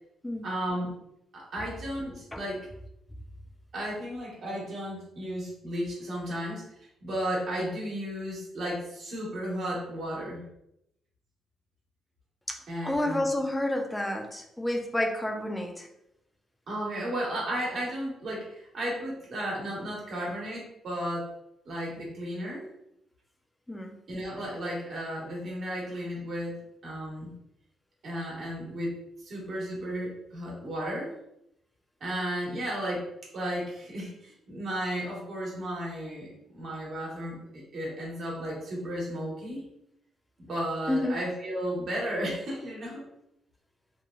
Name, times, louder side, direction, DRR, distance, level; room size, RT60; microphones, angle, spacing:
voice 1, 0.4-0.9 1.3-2.7 3.7-10.4 12.7-13.3 16.7-21.3 21.6-22.7 24.1-26.6 26.8-27.3 28.0-31.1 32.0-39.6 40.4-43.0, equal, 60° right, -4 dB, 1.2 m, -34 dB
voice 2, 12.5-15.9 23.7-23.9 40.9-41.2, left 1 dB, 10° left, 3 dB, 0.5 m, -30 dB
3.0 x 2.1 x 2.4 m, 0.79 s
cardioid pair, 80°, 0 cm